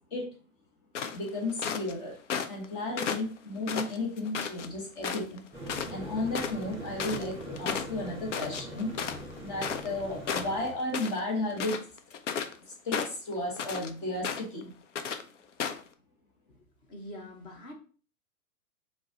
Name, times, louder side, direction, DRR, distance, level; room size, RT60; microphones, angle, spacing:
sound 1, 1.0-1.9 2.3-2.7 3.0-4.7 5.0-5.4 5.7-5.9 6.2-10.0 10.3-11.2 11.5-12.6 12.9-13.9 14.2-14.6 15.0-15.2 15.6-15.9, left 7 dB, 55° left, 0.6 m, -34 dB
voice 1, 1.1-2.2 2.5-5.5 5.9-9.0 9.4-11.8 12.7-14.7, left 2 dB, 35° left, -1 dB, 1.5 m, -34 dB
sound 2, 5.5-10.7, right 1 dB, 5° right, 2.1 m, -42 dB
voice 2, 16.9-17.7, left 1 dB, 10° left, 2 dB, 0.5 m, -44 dB
4.6 x 2.6 x 3.8 m, 0.39 s
figure-of-eight pair, 115°, 43 cm